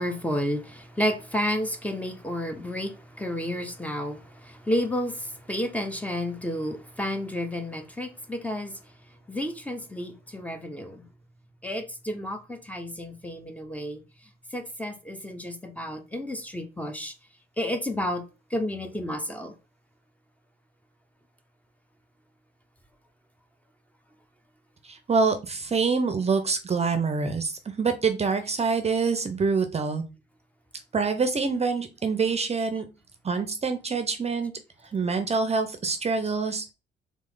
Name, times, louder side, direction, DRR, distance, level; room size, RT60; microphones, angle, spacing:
voice 1, 0.0-8.8 9.3-11.0 11.6-14.0 14.5-17.1 17.6-18.2 18.5-19.5, equal, 5° left, 0.8 m, -31 dB
voice 2, 24.8-30.0 30.9-32.8 33.2-34.5 34.9-36.6, right 4 dB, 30° right, 0.7 m, -26 dB
3.6 x 3.2 x 3.9 m
cardioid pair, 90°, 20 cm